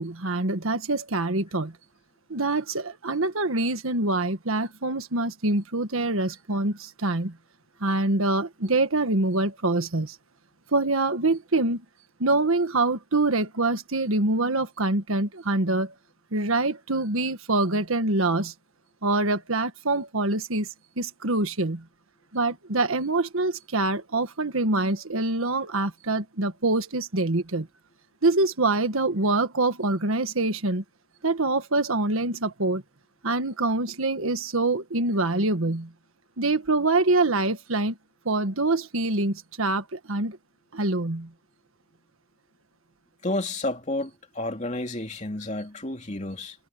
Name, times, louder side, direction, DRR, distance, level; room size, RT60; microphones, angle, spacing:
voice 1, 0.0-1.7 2.3-7.4 7.8-10.2 10.7-11.8 12.2-15.9 16.3-18.5 19.0-20.7 21.0-21.8 22.3-27.7 28.2-30.8 31.2-32.8 33.2-35.9 36.4-38.0 38.2-40.4 40.7-41.3, right 2 dB, 75° right, 1.6 m, -25 dB
voice 2, 43.2-46.5, left 2 dB, 35° left, 2.9 m, -31 dB
head